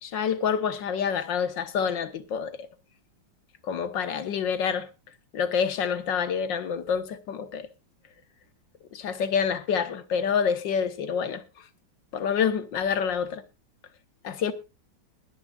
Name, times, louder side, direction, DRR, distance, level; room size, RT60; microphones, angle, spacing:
voice 1, 0.0-2.7 3.6-4.9 5.3-7.7 8.9-11.4 12.1-13.4 14.2-14.5, left 7 dB, 65° left, 1.8 m, -27 dB
21.5 x 10.0 x 2.4 m
omnidirectional pair, 2.2 m